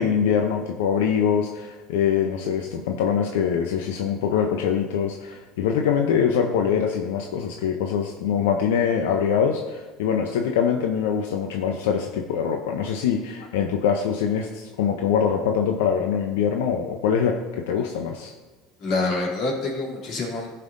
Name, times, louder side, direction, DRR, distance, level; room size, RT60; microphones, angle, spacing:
voice 1, 0.0-17.4 17.7-18.3, left 7 dB, 90° left, 3 dB, 0.6 m, -23 dB
voice 2, 18.8-20.5, left 3 dB, 55° left, -2 dB, 2.7 m, -27 dB
14.0 x 5.5 x 2.6 m, 1.3 s
supercardioid pair, 100°, 0 cm